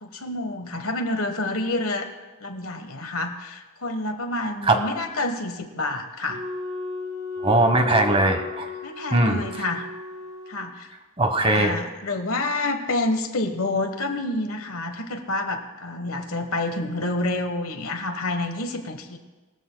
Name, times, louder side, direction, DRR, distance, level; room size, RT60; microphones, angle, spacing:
voice 1, 0.0-2.1 2.4-6.4 8.8-9.8 10.5-10.9 11.4-19.2, left 2 dB, 90° left, 6 dB, 1.4 m, -28 dB
Wind instrument woodwind instrument, 6.3-10.6, left 4 dB, 85° right, 4.2 m, -35 dB
voice 2, 7.4-8.7 9.1-9.4 11.2-11.7, right 2 dB, 25° right, 5 dB, 1.3 m, -19 dB
20.5 x 14.0 x 2.3 m, 1.2 s
head